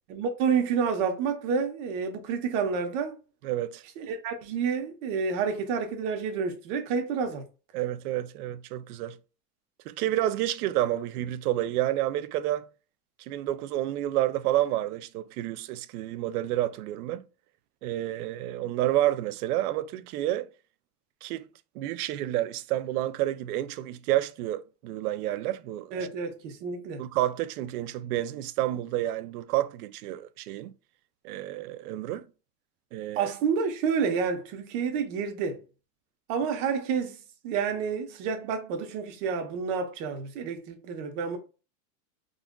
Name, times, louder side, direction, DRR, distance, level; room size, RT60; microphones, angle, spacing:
voice 1, 0.1-3.2 4.0-7.4 25.9-27.0 33.2-35.6 36.3-37.2 37.4-41.4, right 6 dB, 50° right, 0.9 m, -29 dB
voice 2, 3.4-3.8 7.7-9.2 9.9-12.6 13.2-17.2 17.8-20.5 21.2-21.5 21.8-26.0 27.0-30.7 31.2-32.3 32.9-33.3, right 14 dB, 65° right, 0.5 m, -29 dB
3.8 x 2.4 x 2.2 m
supercardioid pair, 140°, 49 cm